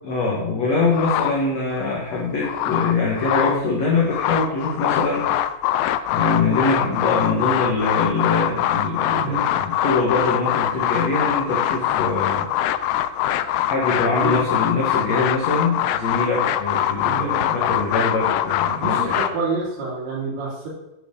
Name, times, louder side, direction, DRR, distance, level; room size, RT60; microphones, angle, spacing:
voice 1, 0.0-5.3 6.1-12.5 13.7-19.2, left 3 dB, 65° left, -3 dB, 1.6 m, -23 dB
sound 1, 0.9-1.8 2.3-3.6 4.0-19.3, left 12 dB, 85° left, 2.5 m, -23 dB
voice 2, 9.1-9.4 14.2-14.4 17.0-17.4 18.7-20.7, right 4 dB, 60° right, -4 dB, 4.5 m, -28 dB
9.0 x 8.9 x 3.8 m, 0.93 s
omnidirectional pair, 5.2 m